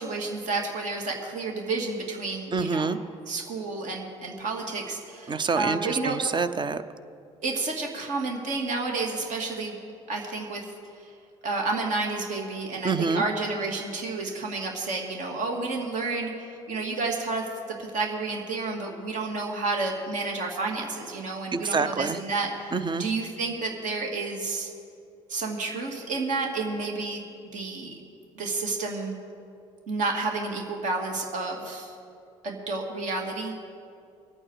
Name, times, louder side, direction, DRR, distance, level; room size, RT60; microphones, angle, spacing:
voice 1, 0.0-2.9 3.3-6.2 7.4-9.8 10.1-10.6 11.4-17.4 17.8-24.7 25.3-28.0 28.4-29.2 29.9-31.9 32.4-33.6, right 3 dB, 55° right, 1 dB, 2.4 m, -30 dB
voice 2, 2.5-3.0 5.3-6.8 12.8-13.2 21.5-22.2 22.7-23.0, right 4 dB, 30° right, 12 dB, 0.7 m, -26 dB
21.5 x 8.9 x 4.7 m, 2.4 s
hypercardioid pair, 55°, 15 cm